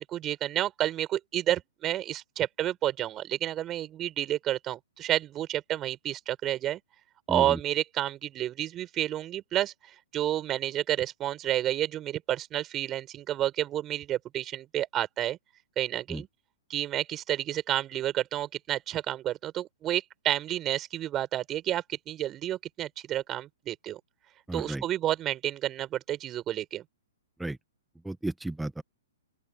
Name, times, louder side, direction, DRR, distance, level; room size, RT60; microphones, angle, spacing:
voice 1, 0.0-6.8 7.3-9.7 10.1-15.4 15.8-16.3 16.7-24.0 24.5-26.8, right 12 dB, 25° right, 5.1 m, -30 dB
voice 2, 7.3-7.6 16.1-16.2 24.5-24.8 27.4-27.6 28.0-28.8, right 2 dB, 5° right, 1.5 m, -33 dB
open air
figure-of-eight pair, 115°, 0 cm